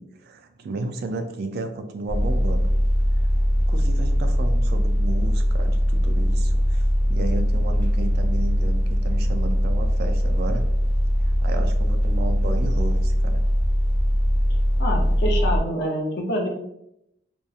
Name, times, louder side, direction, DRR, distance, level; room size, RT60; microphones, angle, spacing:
voice 1, 0.0-2.7 3.7-6.8 7.1-10.7 11.2-13.4, right 2 dB, 55° right, 6 dB, 0.3 m, -33 dB
sound 1, 2.1-15.6, equal, 10° left, 0.7 m, -21 dB
voice 2, 14.8-16.5, equal, 60° left, 1 dB, 0.5 m, -26 dB
2.8 x 2.1 x 2.3 m, 0.80 s
head